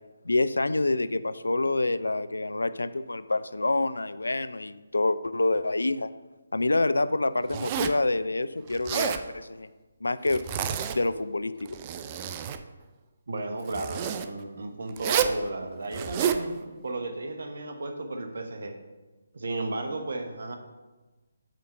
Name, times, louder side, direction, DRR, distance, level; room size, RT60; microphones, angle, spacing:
voice 1, 0.3-6.1 6.5-9.7 10.0-10.4 11.0-11.5, left 2 dB, 75° left, 14 dB, 0.3 m, -27 dB
Zipper (clothing), 7.5-8.1 8.7-9.2 10.3-11.2 11.6-12.6 13.7-14.3 15.0-15.4 15.9-16.4, right 8 dB, 25° right, 0.3 m, -29 dB
voice 2, 13.3-18.7 19.3-20.6, right 2 dB, 55° right, 5 dB, 0.9 m, -34 dB
7.5 x 3.6 x 5.3 m, 1.2 s
figure-of-eight pair, 145°, 0 cm